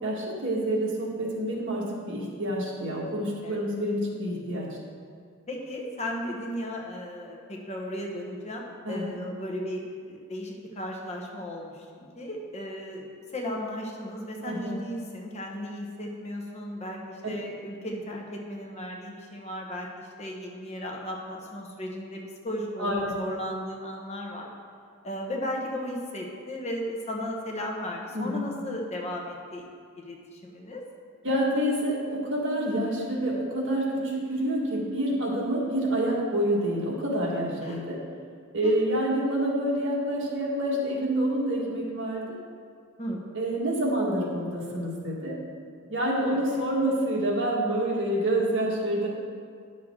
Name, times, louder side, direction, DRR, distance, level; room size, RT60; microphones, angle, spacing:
voice 1, 0.0-4.7 8.9-9.1 14.4-14.8 22.8-23.1 28.1-28.5 31.2-38.0 38.5-42.4 43.3-45.4 45.9-49.1, right 1 dB, 55° right, -3 dB, 1.7 m, -27 dB
voice 2, 3.4-3.7 5.5-24.5 25.0-29.7 30.0-30.8 37.6-37.8 38.6-38.7 43.0-43.2 46.3-46.7, equal, 30° left, 0 dB, 1.0 m, -35 dB
10.5 x 6.3 x 3.7 m, 2.2 s
head